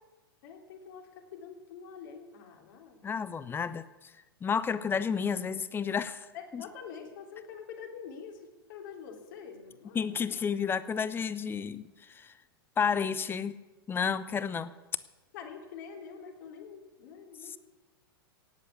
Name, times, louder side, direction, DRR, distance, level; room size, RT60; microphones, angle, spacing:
voice 1, 0.4-3.6 6.3-10.4 15.3-17.6, left 6 dB, 55° left, 2 dB, 3.2 m, -46 dB
voice 2, 3.0-3.9 4.4-6.3 6.5-6.6 9.9-12.3 12.8-13.6 13.9-14.7 17.4-17.6, left 6 dB, 15° left, 16 dB, 0.8 m, -31 dB
17.5 x 8.0 x 8.3 m, 1.2 s
hypercardioid pair, 100°, 13 cm